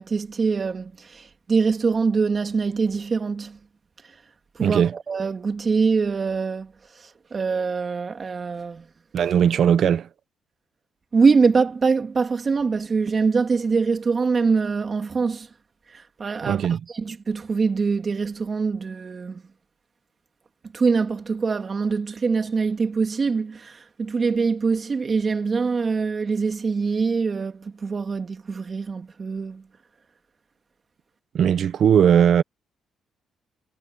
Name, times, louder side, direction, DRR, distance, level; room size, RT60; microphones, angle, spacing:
voice 1, 0.0-3.6 4.0-4.2 4.5-8.9 11.1-15.5 15.9-19.4 20.7-29.6, right 4 dB, 35° right, 2.8 m, -24 dB
voice 2, 4.6-4.9 9.1-10.1 16.4-16.8 31.3-32.4, right 8 dB, 60° right, 1.3 m, -18 dB
cardioid pair, 90°, 0 cm